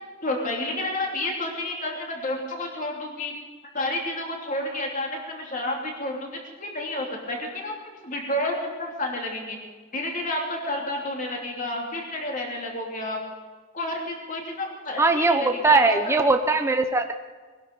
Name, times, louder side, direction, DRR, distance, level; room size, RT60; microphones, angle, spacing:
voice 1, 0.2-3.3 3.7-7.7 8.0-9.6 9.9-13.2 13.7-16.2, left 1 dB, 40° left, 0 dB, 3.0 m, -30 dB
voice 2, 15.0-17.1, right 3 dB, 15° right, 5 dB, 0.8 m, -20 dB
21.0 x 11.5 x 5.4 m, 1.4 s
head